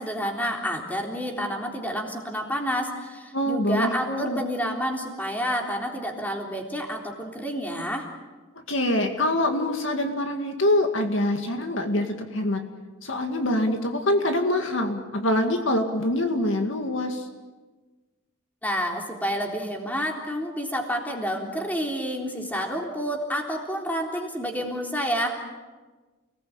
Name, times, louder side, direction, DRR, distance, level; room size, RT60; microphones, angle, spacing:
voice 1, 0.0-8.1 18.6-25.3, equal, 10° left, 1 dB, 3.7 m, -29 dB
voice 2, 3.3-4.4 8.7-12.6 13.0-17.3, left 1 dB, 60° left, 5 dB, 2.2 m, -25 dB
29.5 x 19.5 x 8.8 m, 1.3 s
head